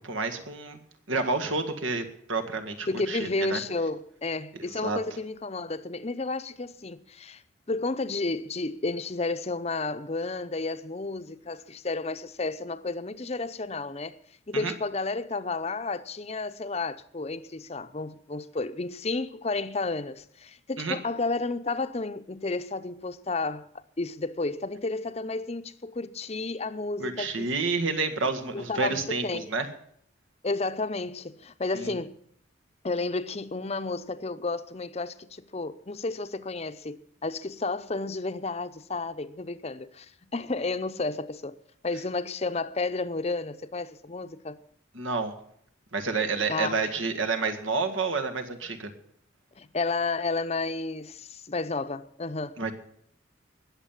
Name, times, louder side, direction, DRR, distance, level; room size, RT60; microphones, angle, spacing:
voice 1, 0.0-0.8 1.1-3.6 4.6-5.0 14.5-14.7 20.8-21.0 27.0-29.7 31.7-32.0 44.9-45.3 45.9-48.9 52.6-52.7, right 4 dB, 80° right, 1.9 m, -29 dB
voice 2, 2.9-7.4 7.7-14.2 14.5-23.7 24.0-27.5 28.5-29.5 30.4-32.2 32.8-41.6 41.8-44.6 46.5-46.8 49.6-52.6, left 3 dB, 30° left, 0.7 m, -32 dB
20.0 x 7.4 x 7.3 m
head